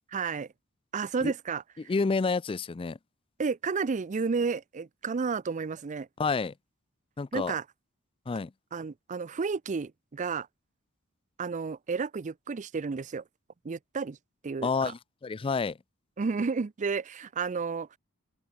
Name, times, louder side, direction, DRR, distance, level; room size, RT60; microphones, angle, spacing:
voice 1, 0.1-0.5 0.9-1.9 3.4-6.1 7.3-7.6 8.7-10.5 11.4-13.2 13.6-14.2 14.4-14.9 16.2-17.9, right 5 dB, 35° right, 0.4 m, -31 dB
voice 2, 1.9-3.0 6.2-6.5 7.2-7.5 8.3-8.5 14.6-15.8, left 4 dB, 25° left, 0.4 m, -29 dB
open air
head